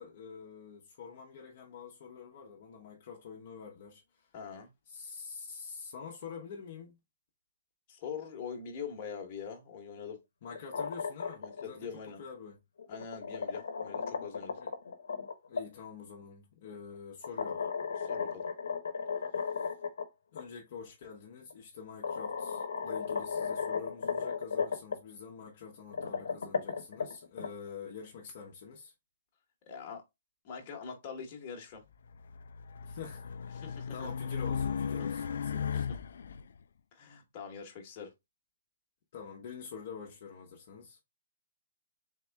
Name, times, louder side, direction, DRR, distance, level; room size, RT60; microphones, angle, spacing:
voice 1, 0.0-4.3 4.9-7.0 10.4-11.9 12.2-12.6 14.6-14.7 15.5-17.6 19.3-19.4 20.3-28.9 32.9-33.2 33.9-35.8 39.1-41.0, left 6 dB, 45° left, 0.8 m, -46 dB
voice 2, 4.3-4.7 7.9-10.2 11.4-12.2 12.9-14.6 18.0-18.5 29.7-30.0 30.4-31.8 33.5-34.1 35.7-35.8 36.9-38.1, left 6 dB, 30° left, 1.1 m, -43 dB
sound 1, 10.5-11.6 12.8-15.6 17.2-20.0 20.4-20.5 21.5-21.6 22.0-25.0 25.8-27.5, left 5 dB, 85° left, 0.8 m, -35 dB
Race car auto racing, 32.1-36.4, left 7 dB, 70° left, 0.3 m, -36 dB
3.7 x 3.3 x 3.3 m
hypercardioid pair, 170°, 0 cm